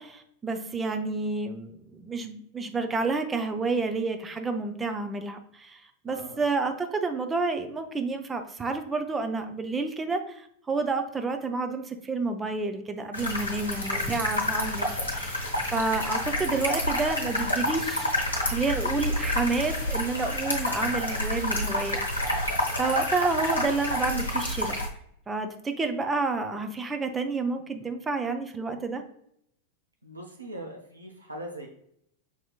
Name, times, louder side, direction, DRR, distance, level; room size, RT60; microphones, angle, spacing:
voice 1, 0.0-18.1 18.4-22.5 22.8-24.7 25.3-29.0, right 3 dB, 15° right, 6 dB, 0.5 m, -30 dB
voice 2, 6.1-6.4 30.0-31.7, right 1 dB, 85° right, 1 dB, 0.5 m, -40 dB
sound 1, 13.1-24.9, left 1 dB, 75° left, 0.9 m, -29 dB
5.4 x 2.8 x 2.2 m, 0.72 s
figure-of-eight pair, 90°, 0 cm